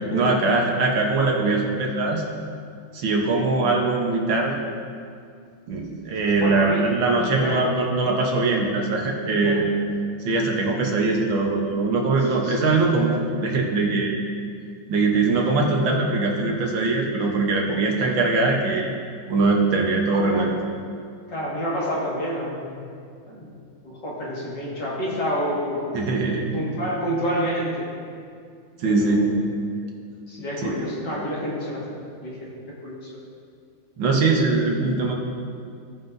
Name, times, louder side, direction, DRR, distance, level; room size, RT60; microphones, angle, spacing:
voice 1, 0.1-2.2 2.9-4.6 5.7-9.6 10.3-14.1 14.9-18.9 19.3-20.5 25.9-26.5 28.8-29.3 30.6-30.7 34.0-35.1, right 3 dB, 70° right, 0 dB, 1.7 m, -22 dB
voice 2, 6.3-6.8 7.2-7.6 9.2-9.6 12.4-12.7 18.0-18.1 20.3-20.5 21.3-22.8 23.3-23.5 23.8-26.0 26.5-27.8 28.8-29.4 30.3-32.5 32.8-33.1, equal, 55° left, -6 dB, 2.4 m, -29 dB
16.5 x 5.8 x 2.6 m, 2.2 s
omnidirectional pair, 2.3 m